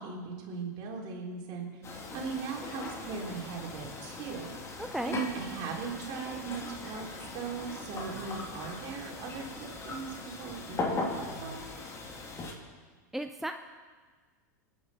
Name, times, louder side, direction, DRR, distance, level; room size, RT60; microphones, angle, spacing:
voice 1, 0.0-1.8 2.1-7.1 7.3-11.6, right 5 dB, 50° right, -1 dB, 3.4 m, -39 dB
sound 1, 1.8-12.5, left 3 dB, 30° left, 2.5 m, -39 dB
voice 2, 4.8-5.2 13.1-13.5, right 1 dB, 5° right, 6 dB, 0.6 m, -34 dB
26.0 x 9.4 x 4.3 m, 1.5 s
hypercardioid pair, 90°, 10 cm